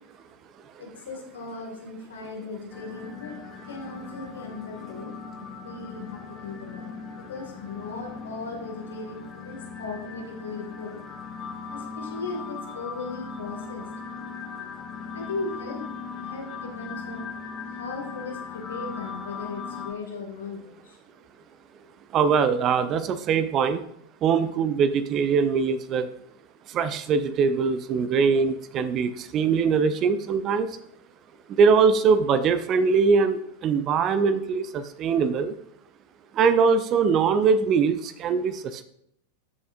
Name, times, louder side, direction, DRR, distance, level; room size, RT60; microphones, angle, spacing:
voice 1, 0.8-3.4 3.7-11.0 11.7-13.9 15.1-17.2 17.7-21.0, left 3 dB, 65° left, 1 dB, 2.2 m, -37 dB
sound 1, 2.7-19.9, left 5 dB, 30° left, 1.2 m, -39 dB
voice 2, 22.1-23.8 24.2-26.1 26.7-30.7 31.6-35.5 36.4-38.8, right 5 dB, 30° right, 13 dB, 0.6 m, -22 dB
13.0 x 6.9 x 2.6 m, 0.75 s
figure-of-eight pair, 90°, 0 cm